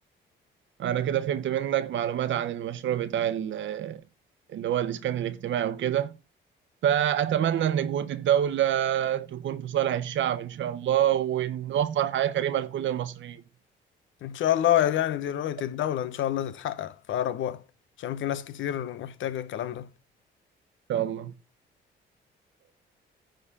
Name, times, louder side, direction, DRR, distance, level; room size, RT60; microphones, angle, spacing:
voice 1, 0.8-4.0 4.5-6.1 6.8-13.4 20.9-21.3, right 10 dB, 70° right, 1.0 m, -27 dB
voice 2, 14.2-17.6 18.0-19.9, left 11 dB, 75° left, 1.0 m, -28 dB
10.0 x 3.9 x 6.9 m
cardioid pair, 90°, 20 cm